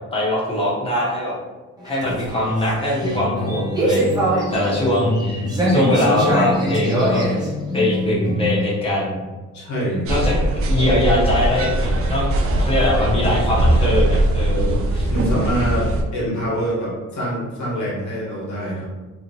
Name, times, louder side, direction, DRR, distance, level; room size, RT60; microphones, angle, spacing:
voice 1, 0.1-1.3 1.8-5.4 5.7-7.2 7.7-9.2 10.1-10.3 10.7-12.3 12.6-15.1, left 1 dB, 20° left, -5 dB, 1.0 m, -21 dB
sound 1, 1.8-8.6, equal, 15° right, 0.7 m, -23 dB
voice 2, 9.5-10.1 15.1-18.9, equal, 80° left, -5 dB, 1.3 m, -25 dB
sound 2, 10.1-16.0, right 1 dB, 50° right, 0.4 m, -20 dB
2.9 x 2.7 x 2.7 m, 1.2 s
cardioid pair, 135°, 29 cm